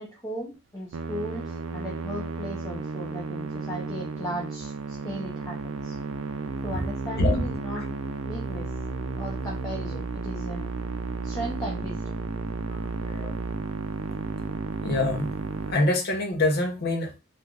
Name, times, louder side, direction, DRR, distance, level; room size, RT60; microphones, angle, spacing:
voice 1, 0.0-6.0 6.6-7.8 8.3-8.7 9.2-10.7 11.2-12.2, equal, 15° left, 0.6 m, -36 dB
Musical instrument, 0.9-15.7, right 4 dB, 80° right, 0.4 m, -33 dB
voice 2, 12.7-13.3 14.8-15.4 15.7-17.1, left 2 dB, 55° left, 0.7 m, -25 dB
3.2 x 2.4 x 2.4 m
head